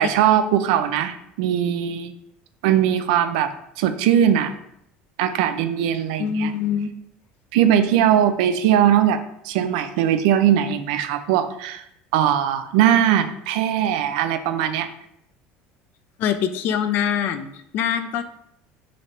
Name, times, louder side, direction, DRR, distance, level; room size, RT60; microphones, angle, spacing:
voice 1, 0.0-2.1 2.6-3.5 3.8-4.5 5.2-6.5 7.5-11.8 12.1-14.9, right 10 dB, 90° right, 10 dB, 0.3 m, -20 dB
voice 2, 6.2-6.9 16.2-18.2, left 8 dB, 55° left, 10 dB, 0.4 m, -24 dB
3.0 x 2.7 x 4.4 m, 0.76 s
cardioid pair, 140°, 4 cm